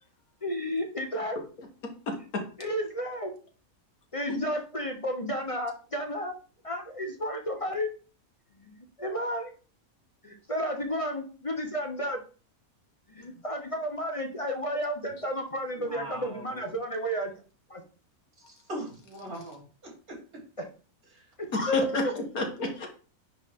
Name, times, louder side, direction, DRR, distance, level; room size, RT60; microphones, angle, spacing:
voice 1, 0.4-1.4 2.6-3.3 4.1-6.3 6.6-7.9 8.6-9.5 10.2-12.2 13.1-17.3 17.7-17.8 21.5-22.1, equal, 25° left, 3 dB, 0.9 m, -32 dB
voice 2, 2.1-2.4 4.3-4.4 21.5-22.0 22.3-22.9, left 2 dB, 90° left, 2 dB, 2.1 m, -30 dB
voice 3, 15.7-16.7 18.5-20.2 21.1-21.3, right 1 dB, 85° right, -3 dB, 3.8 m, -41 dB
9.8 x 3.9 x 3.6 m, 0.37 s
omnidirectional pair, 1.5 m